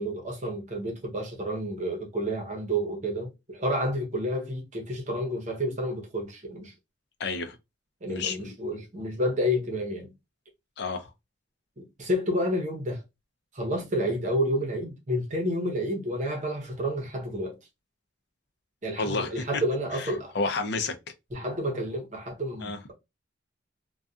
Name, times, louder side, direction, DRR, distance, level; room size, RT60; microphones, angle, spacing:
voice 1, 0.0-6.7 8.0-10.1 11.8-13.0 13.5-17.6 18.8-20.3 21.3-22.9, equal, 40° right, 0.8 m, -30 dB
voice 2, 7.2-7.6 8.1-8.5 10.8-11.1 19.0-19.6 19.9-20.9 22.6-22.8, left 3 dB, 60° left, 0.5 m, -30 dB
2.7 x 2.2 x 2.3 m
head